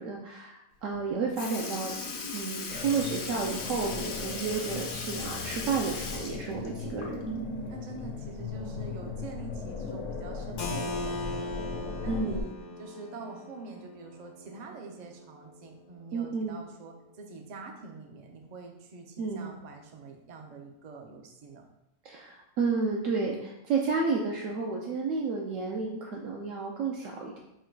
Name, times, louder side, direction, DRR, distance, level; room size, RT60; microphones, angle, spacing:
voice 1, 0.0-2.0 2.2-7.2 12.1-12.5 16.1-16.6 19.2-19.5 22.0-27.4, right 4 dB, 70° right, -1 dB, 0.9 m, -31 dB
Sink (filling or washing) / Liquid, 0.9-1.0 1.4-7.5 7.8-7.9 9.5-9.6 10.5-10.6 11.4-11.6 12.4-12.5, left 4 dB, 85° left, 1.1 m, -38 dB
sound 1, 2.7-12.4, left 4 dB, 70° left, 0.9 m, -38 dB
voice 2, 6.6-7.2 7.7-11.5 12.0-12.5 12.8-21.6, right 3 dB, 50° right, 2 dB, 0.5 m, -45 dB
Keyboard (musical), 10.6-16.1, left 1 dB, 50° left, 0.5 m, -40 dB
4.6 x 2.2 x 4.5 m, 0.83 s
omnidirectional pair, 1.4 m